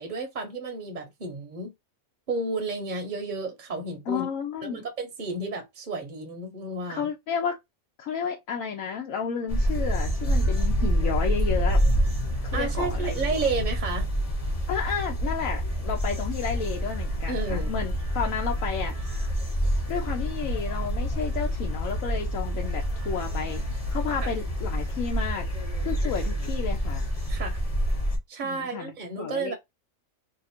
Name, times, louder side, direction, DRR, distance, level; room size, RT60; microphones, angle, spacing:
voice 1, 0.0-1.7 2.3-4.3 4.6-7.1 12.5-14.1 17.3-17.7 24.2-24.3 27.3-27.6 28.3-29.5, right 3 dB, 45° right, 0.8 m, -32 dB
voice 2, 4.1-4.8 6.9-7.6 8.0-11.8 12.4-13.4 14.7-19.2 19.9-23.6 23.9-25.5 25.8-27.0 28.4-29.5, left 7 dB, 80° left, 1.0 m, -32 dB
sound 1, 9.5-28.2, equal, 30° left, 0.9 m, -27 dB
2.9 x 2.4 x 4.2 m
omnidirectional pair, 1.4 m